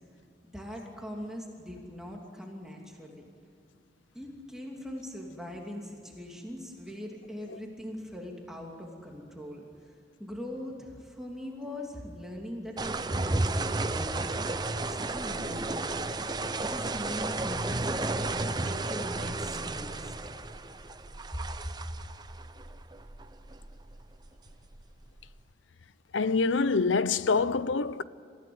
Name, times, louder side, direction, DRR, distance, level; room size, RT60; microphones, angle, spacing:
voice 1, 0.4-3.2 4.1-9.6 10.2-16.1 16.6-20.3, left 1 dB, 5° right, 2.8 m, -41 dB
sound 1, 12.8-25.3, right 2 dB, 20° right, 0.8 m, -33 dB
voice 2, 26.1-28.0, left 4 dB, 85° left, 0.7 m, -25 dB
27.0 x 16.0 x 9.6 m
head